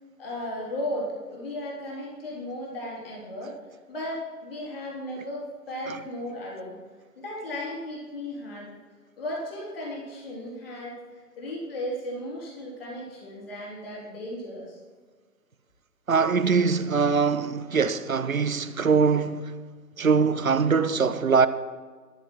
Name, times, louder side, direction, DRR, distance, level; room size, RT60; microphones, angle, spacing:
voice 1, 0.2-3.6 3.9-6.8 7.2-8.7 9.2-14.8, left 1 dB, 35° left, 3.9 m, -35 dB
voice 2, 16.1-19.5 20.0-21.5, right 5 dB, 60° right, 0.9 m, -22 dB
13.5 x 11.0 x 4.7 m
figure-of-eight pair, 145°, 48 cm